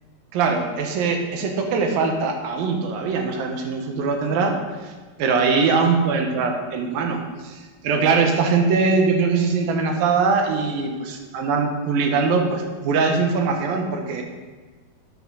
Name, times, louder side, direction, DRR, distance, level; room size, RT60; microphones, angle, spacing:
voice 1, 0.3-4.5 4.8-4.9 5.2-14.2, right 4 dB, 80° right, 3 dB, 2.8 m, -22 dB
9.1 x 6.2 x 6.2 m, 1.4 s
omnidirectional pair, 4.1 m